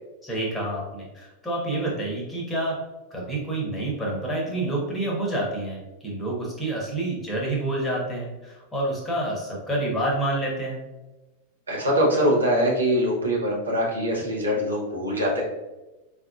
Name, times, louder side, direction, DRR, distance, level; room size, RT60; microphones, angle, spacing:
voice 1, 0.2-2.8 3.1-10.8, right 1 dB, 15° left, -2 dB, 1.0 m, -28 dB
voice 2, 11.7-15.4, equal, 75° right, -3 dB, 0.8 m, -23 dB
4.1 x 2.4 x 2.3 m, 1.1 s
figure-of-eight pair, 90°, 0 cm